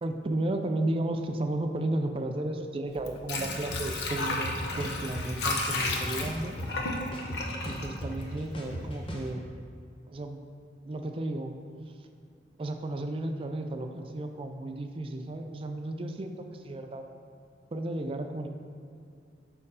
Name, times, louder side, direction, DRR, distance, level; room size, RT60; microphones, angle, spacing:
voice 1, 0.0-6.5 7.6-9.5 10.1-10.4 10.8-11.5 12.6-17.0 17.7-18.5, right 1 dB, 30° right, 5 dB, 0.4 m, -33 dB
Water / Sink (filling or washing), 2.9-8.8 9.1-9.2, left 2 dB, 65° left, 0.7 m, -33 dB
sound 1, 3.7-3.8 4.3-5.2 5.7-6.8 7.1-9.3, equal, 30° left, 0.8 m, -37 dB
4.9 x 4.4 x 5.5 m, 2.4 s
head